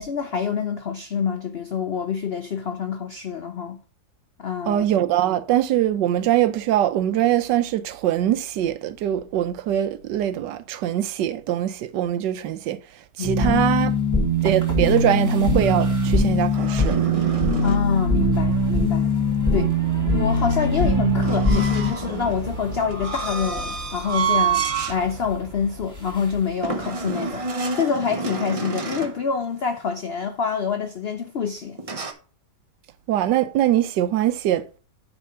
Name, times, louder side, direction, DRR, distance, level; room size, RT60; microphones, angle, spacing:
voice 1, 0.0-3.8 4.4-4.8 13.2-13.6 17.6-19.1 19.5-19.7 20.0-27.4 27.7-31.8, left 6 dB, 75° left, 0.5 m, -26 dB
voice 2, 4.7-13.9 14.4-17.0 33.1-34.8, right 12 dB, 80° right, 1.3 m, -22 dB
sound 1, 13.2-21.9, left 1 dB, 25° left, 3.4 m, -21 dB
sound 2, 13.7-27.6, left 1 dB, 10° right, 1.9 m, -36 dB
sound 3, 15.6-17.9 21.2-25.0 25.5-25.6 26.6-29.2 31.8-32.1, right 5 dB, 50° right, 0.4 m, -28 dB
9.7 x 3.5 x 5.5 m
omnidirectional pair, 1.9 m